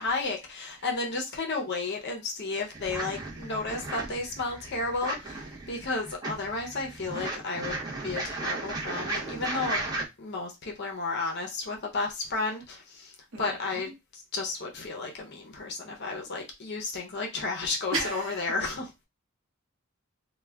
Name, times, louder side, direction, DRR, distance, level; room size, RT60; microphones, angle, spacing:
voice 1, 0.0-9.8 10.2-19.1, left 3 dB, 50° left, 0.5 m, -33 dB
sound 1, 2.7-10.0, right 2 dB, 20° right, 0.6 m, -35 dB
voice 2, 13.3-13.9 17.9-18.4, right 2 dB, 60° right, 0.7 m, -33 dB
2.3 x 2.1 x 3.3 m
head